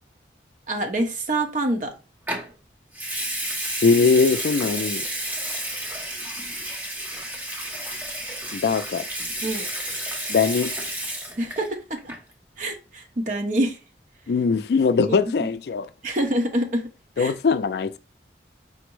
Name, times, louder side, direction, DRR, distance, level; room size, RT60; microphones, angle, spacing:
voice 1, 0.7-1.9 9.4-9.7 11.4-12.1 12.6-13.8 15.0-15.5 16.0-16.9 17.2-17.3, right 1 dB, 45° right, 0.9 m, -26 dB
Water tap faucet / Sink (filling or washing) / Liquid, 2.3-2.5 2.9-11.7 12.0-12.3, right 1 dB, 10° right, 0.7 m, -31 dB
voice 2, 3.8-5.0 8.5-9.0 10.3-10.7 14.3-15.9 17.2-18.0, left 5 dB, 65° left, 0.3 m, -21 dB
5.1 x 2.0 x 4.5 m
head